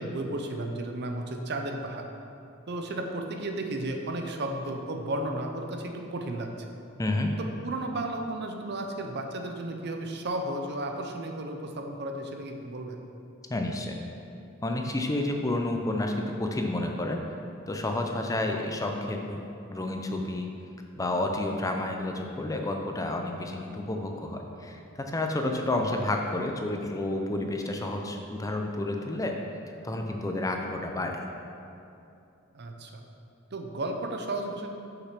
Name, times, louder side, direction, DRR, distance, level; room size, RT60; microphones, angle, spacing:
voice 1, 0.0-2.0 2.7-6.5 7.4-13.0 25.4-25.7 32.5-33.1 33.5-34.7, right 1 dB, 50° right, 4 dB, 0.7 m, -33 dB
voice 2, 7.0-7.3 13.5-14.0 14.6-17.2 17.7-19.4 19.7-20.5 21.0-29.4 29.8-31.2, left 2 dB, 15° left, 2 dB, 0.5 m, -30 dB
6.5 x 5.9 x 5.9 m, 2.7 s
head